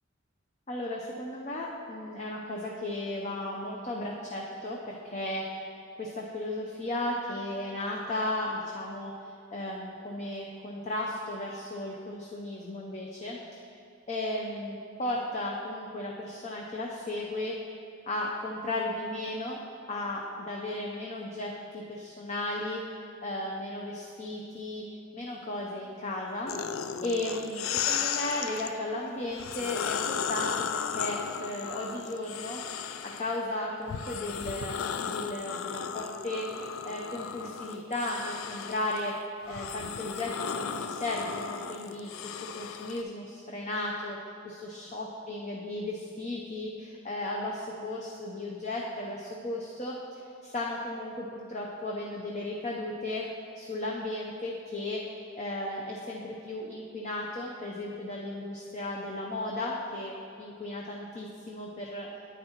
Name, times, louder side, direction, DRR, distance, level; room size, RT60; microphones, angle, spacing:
voice 1, 0.7-5.4 6.0-9.1 9.5-13.4 14.1-17.5 18.1-19.6 19.9-22.8 23.2-24.8 25.1-26.5 27.0-32.6 33.0-39.1 39.5-44.2 44.4-53.2 53.6-55.0 55.4-62.1, left 1 dB, 35° left, -2 dB, 0.6 m, -35 dB
sound 1, 26.5-28.7 29.3-33.4 33.9-43.0, left 7 dB, 80° left, 0.4 m, -35 dB
10.0 x 8.9 x 2.9 m, 2.4 s
head